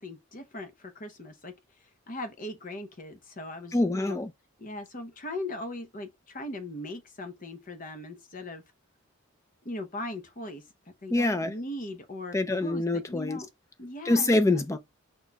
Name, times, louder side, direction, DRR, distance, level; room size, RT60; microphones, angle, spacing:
voice 1, 0.0-1.5 2.1-4.2 4.6-8.6 9.6-13.5 13.8-14.3, left 1 dB, 35° left, 0.7 m, -39 dB
voice 2, 3.7-4.3 11.1-11.5 12.3-13.4 14.0-14.8, left 2 dB, 15° left, 0.4 m, -25 dB
5.2 x 4.1 x 2.3 m
head